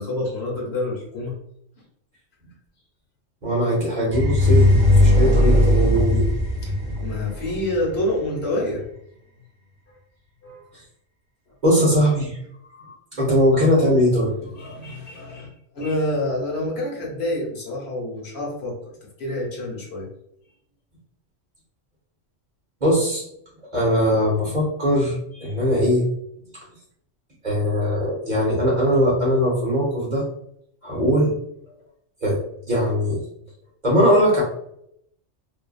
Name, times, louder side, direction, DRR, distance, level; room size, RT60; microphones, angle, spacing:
voice 1, 0.0-1.4 6.6-6.7 7.0-8.8 10.4-10.7 14.4-18.8 19.2-20.1, left 1 dB, 60° left, -3 dB, 1.2 m, -27 dB
voice 2, 3.4-6.3 11.6-12.4 12.7-14.3 22.8-23.2 23.7-26.1 27.4-30.2 30.8-31.3 32.2-32.4 32.7-33.2 33.8-34.4, equal, 40° right, -5 dB, 0.9 m, -20 dB
sound 1, 4.1-8.0, left 1 dB, 35° left, 0.4 m, -18 dB
2.5 x 2.5 x 2.3 m, 0.73 s
omnidirectional pair, 1.3 m